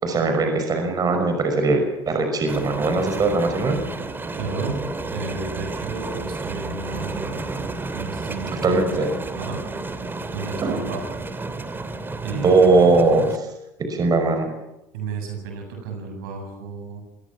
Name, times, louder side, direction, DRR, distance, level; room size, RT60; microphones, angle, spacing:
voice 1, 0.0-3.8 8.6-9.1 10.6-10.8 12.4-13.4 13.9-14.5, right 3 dB, 35° right, 6 dB, 5.7 m, -20 dB
sound 1, 2.5-13.4, right 3 dB, 20° right, 2.5 m, -32 dB
voice 2, 4.3-7.6 7.9-8.7 9.3-9.6 9.9-11.2 12.2-12.7 14.9-17.0, right 4 dB, 85° right, 4 dB, 8.0 m, -33 dB
25.5 x 18.0 x 7.4 m, 0.91 s
supercardioid pair, 95°, 11 cm